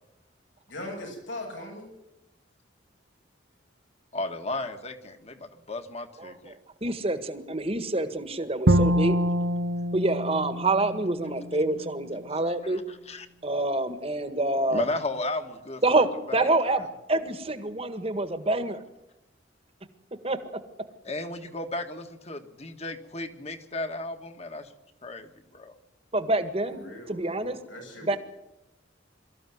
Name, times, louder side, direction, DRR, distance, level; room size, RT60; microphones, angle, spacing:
voice 1, 0.7-1.9 26.6-28.2, left 1 dB, 90° left, 1 dB, 7.7 m, -40 dB
voice 2, 4.1-6.6 12.3-13.3 14.7-16.8 21.0-24.7 25.0-25.7, left 2 dB, 35° left, 7 dB, 1.8 m, -35 dB
voice 3, 6.2-9.2 9.9-12.8 13.4-14.9 15.8-16.1 16.3-18.8 20.2-20.4 26.1-27.6 28.0-28.2, right 2 dB, 30° right, 10 dB, 1.7 m, -27 dB
Bowed string instrument, 8.7-11.8, equal, 65° right, 0.9 m, -25 dB
23.5 x 14.0 x 9.5 m, 0.90 s
head